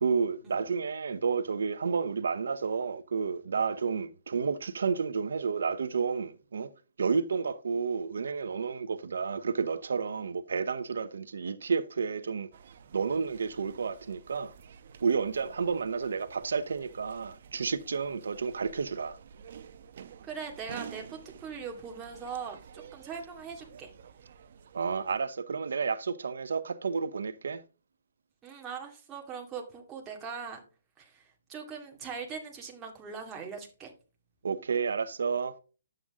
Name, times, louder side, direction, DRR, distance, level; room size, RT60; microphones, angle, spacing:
voice 1, 0.0-6.7 7.0-12.5 12.9-14.5 15.0-19.2 24.7-27.6 34.4-35.6, right 5 dB, 85° right, 0.8 m, -31 dB
sound 1, 12.5-25.3, right 7 dB, 55° right, 0.9 m, -50 dB
voice 2, 20.2-22.6 22.9-23.9 28.4-30.6 31.0-33.9, right 6 dB, 15° right, 2.2 m, -41 dB
11.0 x 7.9 x 3.6 m
hypercardioid pair, 160°, 0 cm